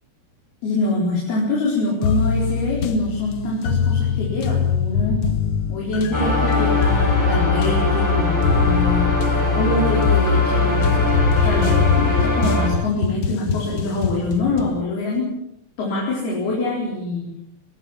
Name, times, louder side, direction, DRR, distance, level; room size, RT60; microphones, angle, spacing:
voice 1, 0.6-5.2 5.7-15.3 15.8-17.3, left 2 dB, 85° left, -3 dB, 6.6 m, -25 dB
sound 1, 2.0-14.8, left 6 dB, 65° left, 1.3 m, -23 dB
sound 2, 6.1-12.7, left 3 dB, 5° left, 7.1 m, -20 dB
24.0 x 20.0 x 7.4 m, 0.76 s
omnidirectional pair, 4.3 m